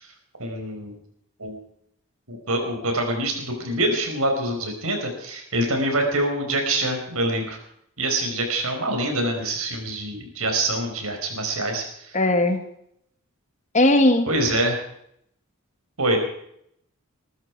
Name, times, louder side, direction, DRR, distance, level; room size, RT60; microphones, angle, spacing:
voice 1, 0.4-0.9 1.4-1.6 2.3-7.6 8.0-11.8 14.3-14.8 16.0-16.2, right 1 dB, 75° right, 4 dB, 4.9 m, -25 dB
voice 2, 12.1-12.6 13.7-14.3, left 1 dB, 35° left, 7 dB, 1.7 m, -18 dB
21.0 x 13.5 x 4.7 m, 0.72 s
head